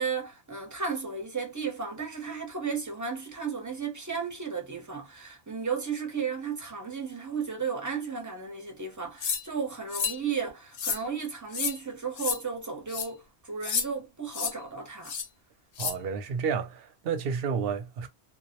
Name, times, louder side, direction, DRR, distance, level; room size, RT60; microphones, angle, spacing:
voice 1, 0.0-15.1, right 5 dB, 20° right, 0.5 m, -34 dB
sound 1, 9.2-9.4 9.9-10.2 10.7-11.0 11.5-11.8 12.2-12.4 12.9-13.1 13.6-13.9 14.3-14.5 15.0-15.3 15.8-15.9, left 6 dB, 60° left, 0.7 m, -30 dB
voice 2, 15.8-18.1, right 6 dB, 65° right, 0.7 m, -31 dB
2.2 x 2.0 x 2.8 m
omnidirectional pair, 1.2 m